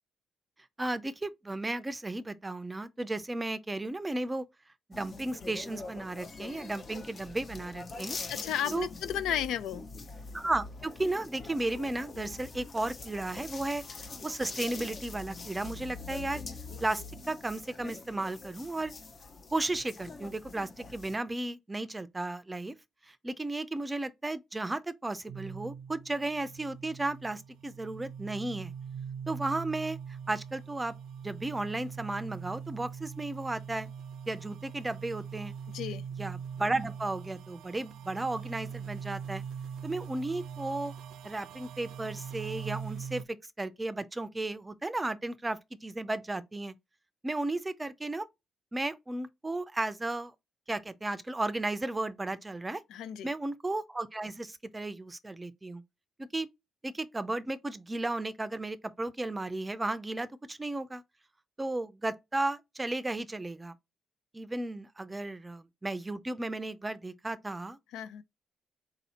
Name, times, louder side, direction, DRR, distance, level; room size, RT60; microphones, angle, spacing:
voice 1, 0.8-4.4 4.9-8.2 8.7-8.9 10.3-16.4 16.8-18.9 19.5-22.7 23.0-28.7 29.3-30.0 30.3-30.9 31.2-33.9 34.3-35.5 36.2-39.4 39.8-40.9 41.2-46.7 47.2-48.3 48.7-50.3 50.7-52.8 53.2-55.8 56.2-56.5 56.8-61.0 61.6-63.7 64.3-67.8, right 2 dB, 15° right, 0.5 m, -34 dB
sound 1, 4.9-21.2, left 3 dB, 45° left, 0.7 m, -44 dB
voice 2, 8.3-9.8 35.7-36.0 52.9-53.3 67.9-68.2, left 10 dB, 85° left, 0.4 m, -33 dB
sound 2, 25.3-43.2, right 7 dB, 80° right, 0.4 m, -42 dB
4.0 x 2.8 x 4.1 m
cardioid pair, 90°, 0 cm